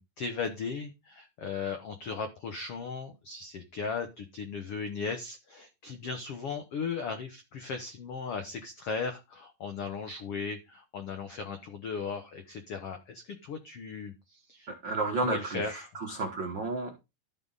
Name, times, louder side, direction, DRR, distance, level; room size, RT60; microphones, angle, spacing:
voice 1, 0.0-14.7 15.2-16.0, left 5 dB, 80° left, 1.3 m, -37 dB
voice 2, 14.7-16.9, right 3 dB, 90° right, 1.0 m, -32 dB
13.0 x 6.2 x 4.0 m
omnidirectional pair, 4.4 m